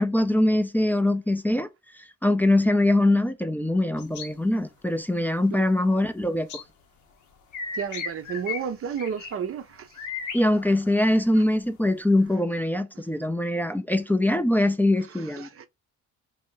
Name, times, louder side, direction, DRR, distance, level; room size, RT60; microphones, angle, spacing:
voice 1, 0.0-1.7 2.2-6.6 10.3-15.5, left 1 dB, 5° left, 0.4 m, -23 dB
sound 1, 4.0-4.3 6.5-6.6 7.5-8.6 9.0-9.3 9.9-11.0, left 5 dB, 80° left, 1.0 m, -35 dB
voice 2, 7.7-9.9 15.3-15.7, right 7 dB, 50° right, 0.5 m, -31 dB
3.1 x 2.6 x 3.7 m
cardioid pair, 90°, 30 cm